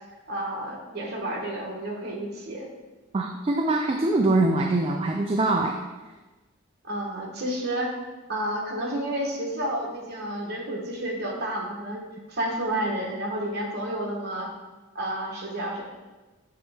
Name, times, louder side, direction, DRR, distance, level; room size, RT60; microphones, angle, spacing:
voice 1, 0.3-2.7 6.8-7.9 8.3-14.5 14.9-15.8, right 1 dB, 50° right, -2 dB, 1.2 m, -30 dB
voice 2, 3.1-5.8, right 2 dB, 25° right, 2 dB, 0.3 m, -23 dB
7.6 x 4.0 x 3.5 m, 1.2 s
head